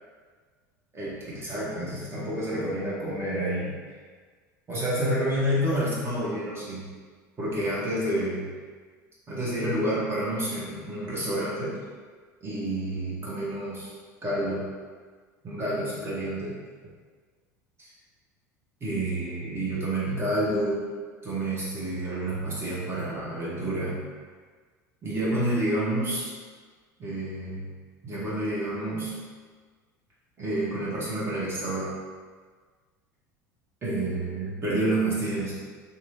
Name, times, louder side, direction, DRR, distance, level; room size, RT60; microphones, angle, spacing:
voice 1, 0.9-3.7 4.7-6.8 7.4-8.5 9.3-11.7 12.4-13.9 14.2-14.6 15.4-16.6 18.8-20.8 21.2-24.0 25.0-26.3 27.0-27.7 28.0-29.1 30.4-31.9 33.8-35.5, right 1 dB, 25° right, -7 dB, 1.1 m, -29 dB
2.9 x 2.6 x 2.7 m, 1.5 s
figure-of-eight pair, 70°, 10 cm